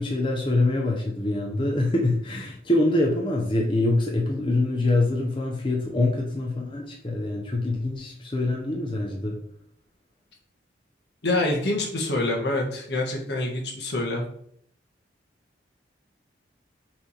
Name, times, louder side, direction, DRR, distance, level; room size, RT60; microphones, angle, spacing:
voice 1, 0.0-9.4, left 2 dB, 30° left, 0 dB, 0.8 m, -25 dB
voice 2, 11.2-14.2, left 2 dB, 70° left, 0 dB, 1.6 m, -26 dB
5.9 x 3.4 x 5.5 m, 0.67 s
head